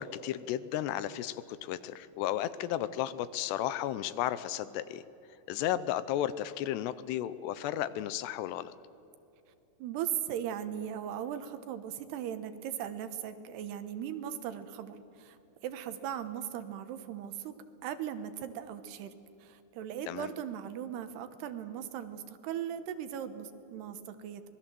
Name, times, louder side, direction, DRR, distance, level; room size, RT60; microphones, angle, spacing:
voice 1, 0.0-5.0 5.5-8.7 20.1-20.3, left 12 dB, 80° left, 15 dB, 2.8 m, -34 dB
voice 2, 9.8-17.5 17.8-19.1 19.4-24.4, right 9 dB, 75° right, 10 dB, 3.1 m, -38 dB
26.0 x 20.5 x 7.7 m, 2.9 s
omnidirectional pair, 4.9 m